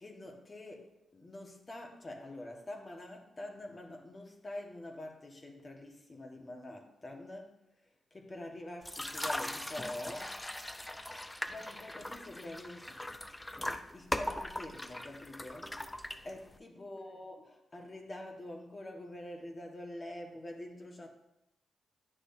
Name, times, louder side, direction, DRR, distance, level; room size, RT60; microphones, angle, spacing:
voice 1, 0.0-7.6 8.1-10.7 11.5-12.9 13.6-15.8 16.2-21.1, left 1 dB, 35° left, 2 dB, 1.5 m, -46 dB
sound 1, 8.8-16.6, left 1 dB, 15° left, 0.5 m, -40 dB
9.9 x 6.3 x 2.7 m, 0.87 s
cardioid pair, 60°, 0 cm